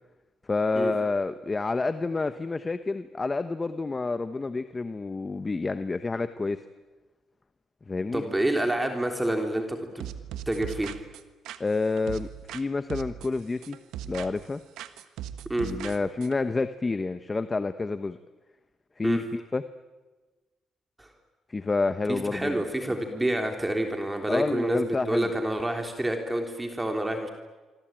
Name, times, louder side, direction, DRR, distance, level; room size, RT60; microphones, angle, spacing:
voice 1, 0.5-6.6 7.9-8.2 11.6-13.8 14.0-14.6 15.6-18.2 19.0-19.6 21.5-22.6 24.3-25.3, left 3 dB, 25° left, 11 dB, 1.1 m, -29 dB
voice 2, 8.1-10.1 10.5-10.9 15.5-15.7 19.0-19.2 21.0-21.1 22.1-27.3, right 1 dB, 15° right, 4 dB, 3.4 m, -28 dB
sound 1, 10.0-12.6 12.9-14.5 14.8-16.4, right 10 dB, 85° right, 1.5 m, -39 dB
26.5 x 24.0 x 9.1 m, 1.3 s
cardioid pair, 90°, 0 cm